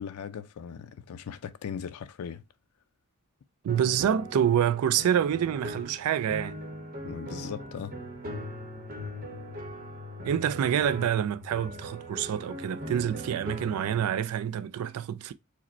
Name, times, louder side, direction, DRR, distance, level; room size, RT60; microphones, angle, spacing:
voice 1, 0.0-2.4 7.0-7.9, left 7 dB, 85° left, 0.4 m, -38 dB
voice 2, 3.6-6.6 10.2-15.3, right 9 dB, 80° right, 0.3 m, -27 dB
sound 1, 3.7-14.1, equal, 40° right, 0.9 m, -40 dB
4.8 x 2.1 x 4.2 m
head